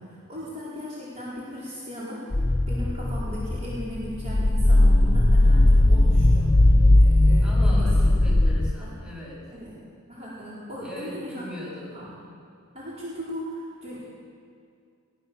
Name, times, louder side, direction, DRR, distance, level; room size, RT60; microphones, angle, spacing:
voice 1, 0.0-8.3 8.8-8.9 9.5-9.8 10.1-11.5 11.9-12.1 12.7-14.0, left 1 dB, 35° right, -8 dB, 4.5 m, -37 dB
sound 1, 2.3-8.7, left 1 dB, 20° left, 0.6 m, -18 dB
voice 2, 7.4-7.9 8.2-9.4 10.8-12.0, equal, 5° right, -5 dB, 7.1 m, -39 dB
20.5 x 18.0 x 7.0 m, 2.3 s
head